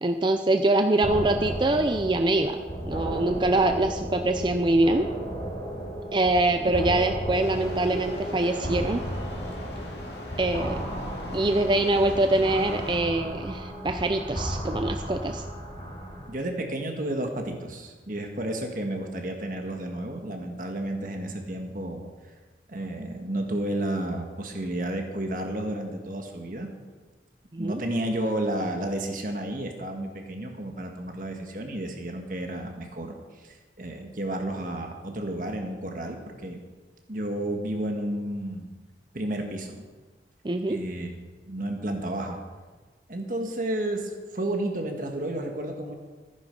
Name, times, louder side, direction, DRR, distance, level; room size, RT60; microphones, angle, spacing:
voice 1, 0.0-5.1 6.1-9.0 10.4-10.8 11.3-15.4 27.5-27.8 40.4-40.8, right 2 dB, 25° right, 7 dB, 0.5 m, -24 dB
sound 1, 1.0-16.3, equal, 35° left, 4.0 m, -34 dB
voice 2, 6.6-7.0 10.3-10.4 16.3-22.1 22.7-26.7 27.6-36.6 37.1-38.7 39.1-39.8 40.7-41.1 41.4-42.4 43.1-45.9, right 1 dB, 50° right, 3 dB, 1.6 m, -32 dB
sound 2, 7.4-13.0, left 1 dB, 70° left, 2.4 m, -40 dB
14.5 x 10.0 x 5.3 m, 1.3 s
head